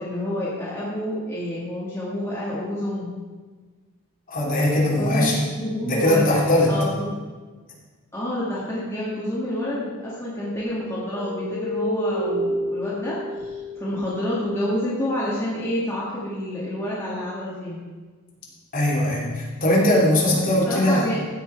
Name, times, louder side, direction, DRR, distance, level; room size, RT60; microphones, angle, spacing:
voice 1, 0.0-3.1 4.9-6.3 6.7-7.1 8.1-17.8 20.6-21.2, left 1 dB, 10° left, -8 dB, 1.8 m, -28 dB
voice 2, 4.3-5.4 5.8-6.7 18.7-21.1, left 1 dB, 40° left, -5 dB, 3.0 m, -20 dB
sound 1, 9.5-14.7, equal, 55° left, 1.0 m, -31 dB
15.5 x 6.0 x 4.6 m, 1.4 s
head